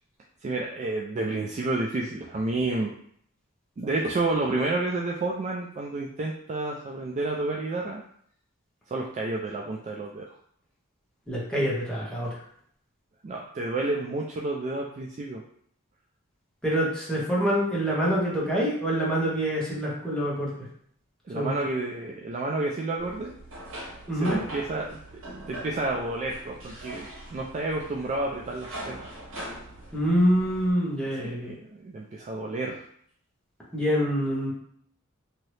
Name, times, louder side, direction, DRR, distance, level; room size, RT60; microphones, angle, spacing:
voice 1, 0.4-2.9 3.8-8.0 8.9-10.3 13.2-15.4 21.3-23.3 24.1-25.0 25.5-29.1 31.2-32.8, right 2 dB, 35° right, -1 dB, 0.3 m, -30 dB
voice 2, 11.3-12.3 16.6-20.5 21.3-21.5 24.1-24.4 29.9-31.5 33.7-34.5, equal, 5° left, -7 dB, 1.0 m, -25 dB
sound 1, 23.0-30.7, right 1 dB, 75° right, 1.2 m, -41 dB
2.9 x 2.7 x 3.2 m, 0.64 s
head